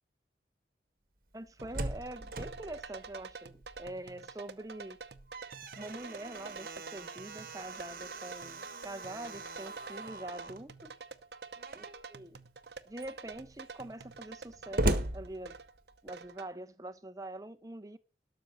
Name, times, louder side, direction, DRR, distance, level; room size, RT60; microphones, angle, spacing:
voice 1, 1.3-5.0 5.8-10.9 11.7-12.4 12.9-15.6 16.0-18.0, right 1 dB, 20° right, 0.9 m, -44 dB
Slam, 1.3-4.1 4.5-4.6 5.0-10.7 11.6-12.1 12.6-12.7 13.0-16.1, right 1 dB, 55° right, 1.3 m, -39 dB
sound 1, 1.6-16.5, right 4 dB, 70° right, 0.8 m, -48 dB
12.5 x 6.3 x 7.3 m
head